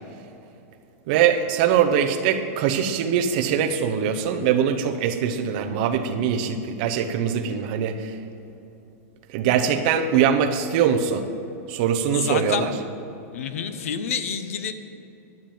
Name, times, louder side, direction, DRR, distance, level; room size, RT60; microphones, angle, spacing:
voice 1, 1.1-8.2 9.3-11.2 11.7-12.7, right 8 dB, 35° right, 5 dB, 0.8 m, -22 dB
voice 2, 12.1-12.7 13.3-14.7, left 7 dB, 60° left, 10 dB, 0.9 m, -28 dB
12.0 x 7.4 x 8.6 m, 2.9 s
supercardioid pair, 180°, 9 cm